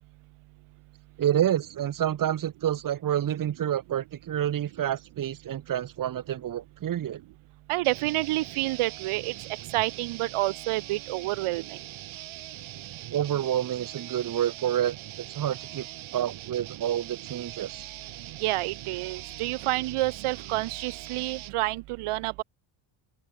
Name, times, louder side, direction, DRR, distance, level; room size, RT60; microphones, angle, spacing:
voice 1, 1.2-7.2 13.1-15.9 16.1-17.9, right 11 dB, 40° right, 1.2 m, -28 dB
voice 2, 7.7-9.3 9.7-11.8 18.4-22.4, right 18 dB, 90° right, 2.0 m, -29 dB
sound 1, 7.8-21.6, right 14 dB, 70° right, 3.1 m, -42 dB
open air
cardioid pair, 140°, 49 cm